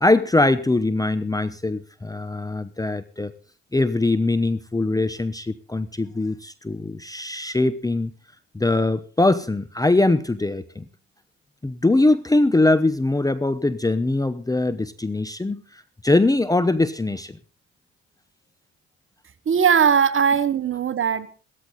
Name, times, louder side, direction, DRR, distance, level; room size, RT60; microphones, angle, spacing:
voice 1, 0.0-3.3 3.7-8.1 8.5-10.8 11.6-15.6 16.0-17.4, left 2 dB, 10° left, 12 dB, 0.9 m, -22 dB
voice 2, 19.4-21.3, right 7 dB, 35° right, 13 dB, 1.5 m, -19 dB
16.0 x 13.5 x 4.0 m, 0.37 s
figure-of-eight pair, 55°, 34 cm